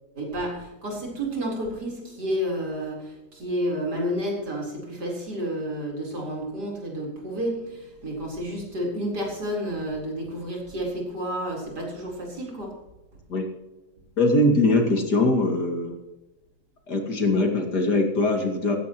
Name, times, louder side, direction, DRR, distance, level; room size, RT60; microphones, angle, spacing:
voice 1, 0.2-12.7, equal, 85° right, -2 dB, 4.8 m, -30 dB
voice 2, 14.2-16.0 16.9-18.8, left 2 dB, 80° left, 2 dB, 3.0 m, -22 dB
16.5 x 15.5 x 3.1 m, 1.0 s
omnidirectional pair, 1.7 m